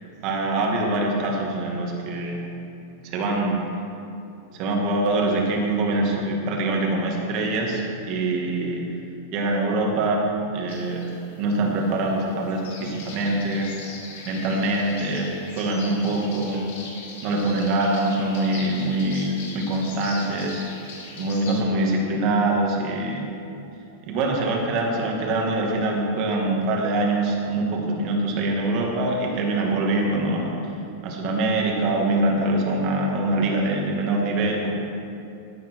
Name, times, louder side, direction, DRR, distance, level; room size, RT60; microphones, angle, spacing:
voice 1, 0.2-2.5 3.0-3.6 4.5-8.8 9.3-10.2 10.5-14.0 14.2-15.3 15.6-16.6 17.2-20.6 21.2-23.3 24.1-30.5 31.0-34.7, right 2 dB, 40° right, 0 dB, 2.2 m, -24 dB
sound 1, 10.7-21.6, left 4 dB, 65° left, 3.2 m, -41 dB
16.0 x 9.3 x 4.8 m, 2.7 s
supercardioid pair, 160°, 0 cm